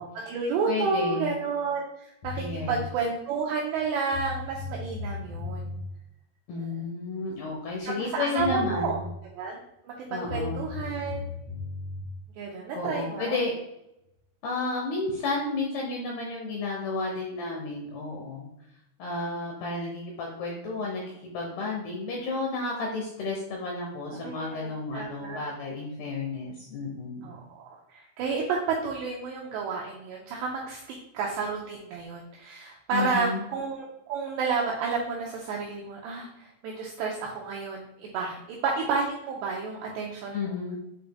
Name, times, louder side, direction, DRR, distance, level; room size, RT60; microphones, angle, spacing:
voice 1, 0.0-5.7 6.6-6.8 7.8-9.0 9.4-9.6 9.8-11.3 12.4-13.4 24.2-25.4 27.2-40.6, right 5 dB, 85° right, -2 dB, 2.4 m, -31 dB
voice 2, 0.6-1.3 2.4-2.8 6.5-9.0 10.1-10.6 12.7-13.5 14.4-18.5 19.0-21.0 21.3-27.3 32.9-33.4 40.3-40.8, left 3 dB, 80° left, -1 dB, 2.3 m, -32 dB
sound 1, 2.2-2.8 3.8-3.9 4.1-5.8 8.0-8.1 8.4-9.0 10.3-12.0, left 4 dB, 45° left, 3.3 m, -36 dB
8.3 x 5.1 x 2.2 m, 0.85 s
omnidirectional pair, 5.7 m